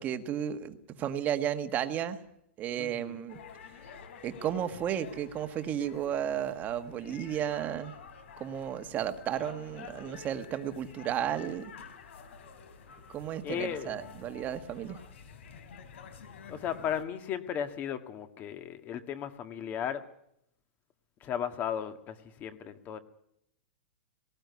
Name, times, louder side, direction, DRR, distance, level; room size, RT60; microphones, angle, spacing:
voice 1, 0.0-2.2 2.6-3.4 4.2-7.9 8.4-11.7 13.1-15.0, right 10 dB, 25° right, 9 dB, 1.5 m, -33 dB
voice 2, 2.8-3.2 13.4-14.0 16.5-20.0 21.2-23.0, left 9 dB, 25° left, 9 dB, 1.8 m, -35 dB
sound 1, 3.3-17.0, left 6 dB, 65° left, 3.9 m, -49 dB
18.5 x 17.5 x 9.5 m, 0.76 s
hypercardioid pair, 155°, 7 cm